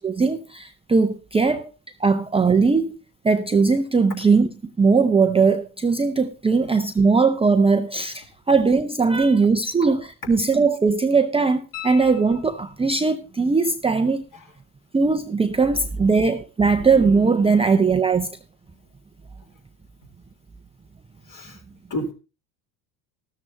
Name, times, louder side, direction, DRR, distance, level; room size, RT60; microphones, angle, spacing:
voice 1, 0.0-1.7 2.0-2.9 3.2-4.5 4.8-14.2 14.9-18.3, right 4 dB, 10° right, 0.7 m, -19 dB
sound 1, 11.7-13.1 15.9-16.0, left 11 dB, 70° left, 4.0 m, -40 dB
voice 2, 21.3-21.6 21.9-22.1, equal, 40° left, 3.8 m, -30 dB
13.0 x 13.0 x 2.9 m
hypercardioid pair, 75°, 49 cm